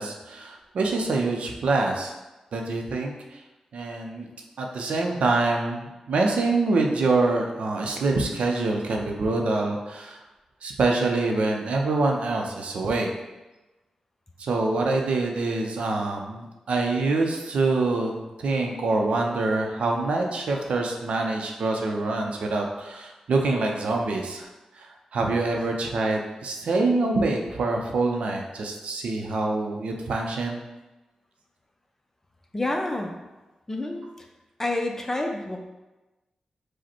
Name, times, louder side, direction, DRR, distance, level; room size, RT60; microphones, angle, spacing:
voice 1, 0.0-2.1 2.5-3.4 3.7-4.3 4.6-10.2 10.6-13.1 14.4-24.5 24.8-30.6, right 3 dB, 85° right, 1 dB, 0.6 m, -25 dB
voice 2, 32.5-33.1 33.7-34.0 34.6-35.6, left 2 dB, 20° left, 2 dB, 0.5 m, -28 dB
5.0 x 2.1 x 4.3 m, 1.1 s
wide cardioid pair, 95°, 2 cm